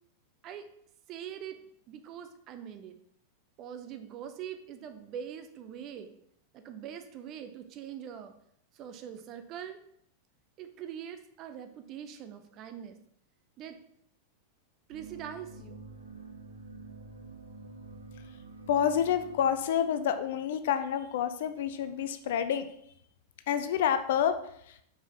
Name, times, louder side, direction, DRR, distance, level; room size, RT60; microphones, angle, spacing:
voice 1, 1.1-1.6 1.9-3.0 3.6-6.1 6.5-8.3 8.7-9.8 10.6-13.0 13.6-13.8 14.9-15.8, right 9 dB, 35° right, 8 dB, 0.5 m, -43 dB
sound 1, 14.9-20.4, right 3 dB, 80° right, 0.8 m, -48 dB
voice 2, 18.7-22.7 23.5-24.3 24.7-24.8, left 9 dB, 55° left, 10 dB, 0.4 m, -28 dB
4.5 x 4.1 x 2.8 m, 0.70 s
figure-of-eight pair, 90°, 0 cm